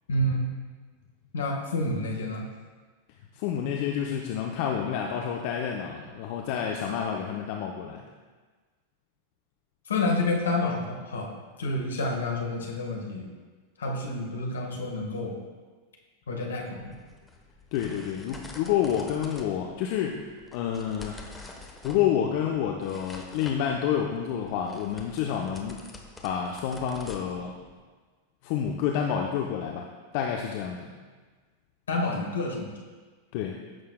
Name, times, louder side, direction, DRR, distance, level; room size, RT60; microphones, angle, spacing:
voice 1, 0.1-0.5 1.3-2.4 9.9-11.3 11.6-13.3 13.8-15.3 16.3-17.0 31.9-32.7, left 2 dB, 65° left, 0 dB, 1.4 m, -29 dB
voice 2, 3.3-8.0 17.7-20.2 20.5-21.3 21.8-25.8 26.2-27.5 28.4-29.8 30.1-30.9 33.3-33.6, left 8 dB, 45° left, 1 dB, 0.6 m, -29 dB
sound 1, 16.7-27.8, left 3 dB, 10° left, 1.0 m, -47 dB
14.5 x 6.5 x 2.2 m, 1.4 s
figure-of-eight pair, 90°, 0 cm